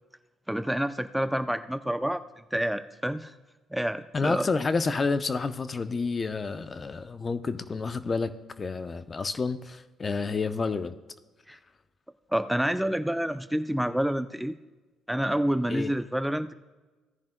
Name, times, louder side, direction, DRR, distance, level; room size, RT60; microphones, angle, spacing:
voice 1, 0.5-2.2 2.5-3.3 3.7-4.5 11.5-11.6 12.3-14.6 15.1-16.5, right 1 dB, 5° right, 11 dB, 0.5 m, -28 dB
voice 2, 4.1-11.0 15.7-15.9, left 4 dB, 35° left, 11 dB, 0.6 m, -29 dB
17.5 x 10.5 x 2.2 m, 1.2 s
hypercardioid pair, 60°, 0 cm